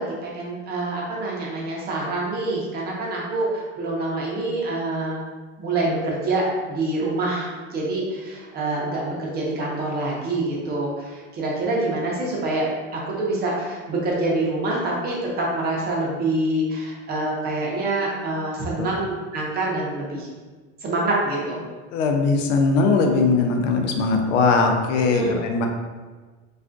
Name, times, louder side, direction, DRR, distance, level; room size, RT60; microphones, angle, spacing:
voice 1, 0.0-5.2 5.6-20.3 20.8-21.6 25.1-25.4, right 2 dB, 25° right, -4 dB, 0.7 m, -26 dB
voice 2, 21.9-25.7, left 4 dB, 90° left, 4 dB, 0.6 m, -20 dB
3.4 x 2.4 x 2.5 m, 1.4 s
supercardioid pair, 135°, 36 cm